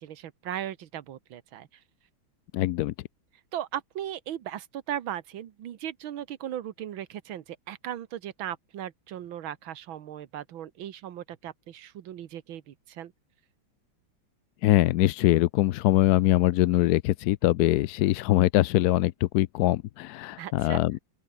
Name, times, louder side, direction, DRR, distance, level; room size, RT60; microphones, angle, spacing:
voice 1, 0.0-1.7 3.5-13.1 20.4-20.8, right 11 dB, 80° right, 2.0 m, -37 dB
voice 2, 2.5-2.9 14.6-21.0, left 16 dB, 75° left, 0.9 m, -23 dB
open air
omnidirectional pair, 2.2 m